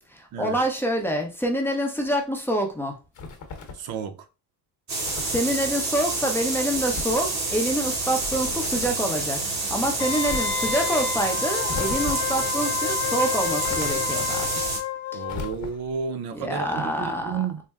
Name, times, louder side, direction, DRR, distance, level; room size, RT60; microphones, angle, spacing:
voice 1, 0.0-3.0 5.2-9.4 9.7-14.5 15.1-15.2 16.3-17.4, right 1 dB, 5° left, 0.7 m, -26 dB
sound 1, 3.1-3.9 5.1-5.5 6.7-7.3 8.2-9.0 10.2-10.8 11.7-12.4 13.6-14.3 15.2-16.0, left 4 dB, 50° left, 1.0 m, -37 dB
voice 2, 3.8-4.1 15.1-17.6, right 6 dB, 65° right, 0.6 m, -31 dB
sound 2, 4.9-14.8, right 3 dB, 45° right, 1.7 m, -28 dB
Wind instrument woodwind instrument, 10.0-15.5 15.9-16.0, left 9 dB, 90° left, 0.6 m, -30 dB
4.2 x 2.1 x 3.5 m
cardioid pair, 130°, 39 cm